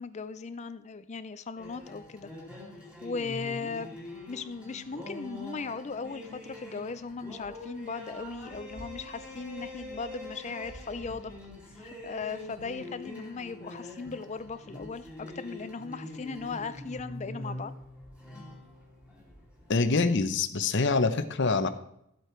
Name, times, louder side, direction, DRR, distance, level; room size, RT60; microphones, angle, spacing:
voice 1, 0.0-2.3 3.0-3.9 4.3-11.3 11.7-17.7, left 4 dB, 30° left, 13 dB, 0.4 m, -38 dB
sound 1, 1.6-19.9, left 1 dB, 5° right, 2.5 m, -44 dB
voice 2, 19.7-21.7, left 3 dB, 55° left, 10 dB, 0.7 m, -25 dB
13.0 x 8.1 x 4.4 m, 0.77 s
head